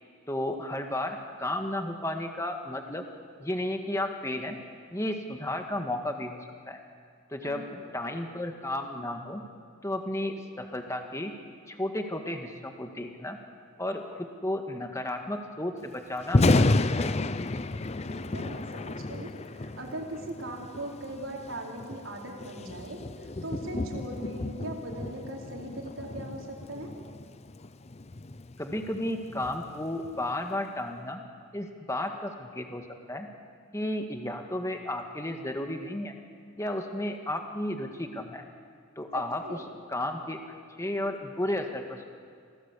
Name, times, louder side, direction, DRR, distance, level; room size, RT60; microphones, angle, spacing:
voice 1, 0.3-3.0 3.4-4.6 4.9-6.8 7.3-7.6 7.9-9.4 9.8-11.3 11.7-13.4 13.8-17.1 28.6-31.2 31.5-33.3 33.7-36.1 36.6-38.4 39.0-39.6 39.9-40.4 40.8-42.1, left 1 dB, 15° left, 4 dB, 1.8 m, -33 dB
voice 2, 7.4-7.8 18.1-26.9 39.1-39.7, right 1 dB, 70° right, -2 dB, 4.3 m, -40 dB
Thunder, 16.2-30.3, left 2 dB, 30° left, 0.6 m, -31 dB
27.5 x 18.0 x 8.5 m, 2.2 s
head